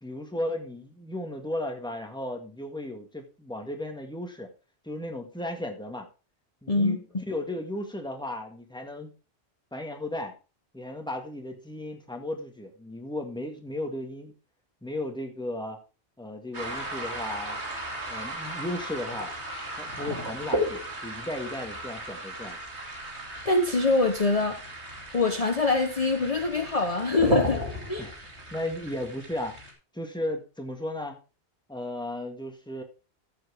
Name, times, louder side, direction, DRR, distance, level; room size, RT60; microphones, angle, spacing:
voice 1, 0.0-4.5 4.8-6.1 6.6-9.1 9.7-10.3 10.7-14.3 14.8-15.8 16.2-17.6 18.1-19.3 19.8-22.6 28.0-28.1 28.5-29.6 29.9-31.2 31.7-32.8, left 1 dB, 5° left, 3 dB, 1.7 m, -35 dB
voice 2, 6.7-7.2 23.4-24.6 25.1-27.6 27.9-28.1, left 3 dB, 35° left, 4 dB, 1.1 m, -24 dB
sound 1, 16.5-29.7, right 1 dB, 80° right, 2.9 m, -34 dB
13.5 x 7.4 x 3.5 m, 0.32 s
omnidirectional pair, 1.1 m